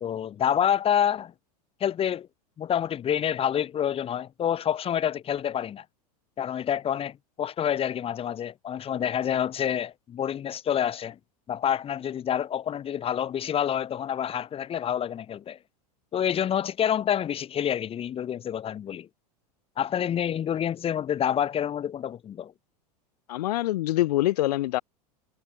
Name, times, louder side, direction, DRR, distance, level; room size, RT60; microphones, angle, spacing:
voice 1, 0.0-1.3 1.8-2.3 2.6-5.8 6.4-11.2 11.5-15.6 16.1-19.1 19.8-22.5, left 9 dB, 30° left, 1.5 m, -27 dB
voice 2, 23.3-24.8, left 16 dB, 75° left, 0.4 m, -25 dB
hypercardioid pair, 105°, 20 cm